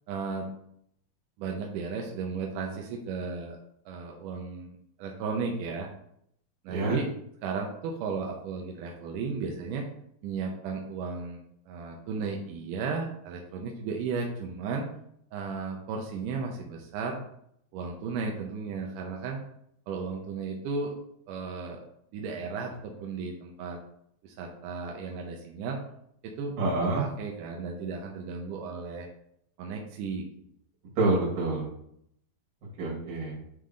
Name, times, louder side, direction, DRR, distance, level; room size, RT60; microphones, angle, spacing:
voice 1, 0.1-0.5 1.4-3.6 3.9-4.7 5.0-5.9 6.6-7.1 7.4-9.9 10.2-11.4 11.7-14.9 15.3-17.2 17.7-19.4 19.9-20.9 21.3-21.8 22.1-23.8 24.2-25.8 26.2-26.5 27.0-29.1 29.6-30.3, right 4 dB, 75° right, 1 dB, 2.0 m, -34 dB
voice 2, 26.6-27.0 31.0-31.7 32.8-33.4, right 2 dB, 55° right, -5 dB, 3.5 m, -27 dB
9.4 x 3.5 x 3.7 m, 0.71 s
omnidirectional pair, 4.5 m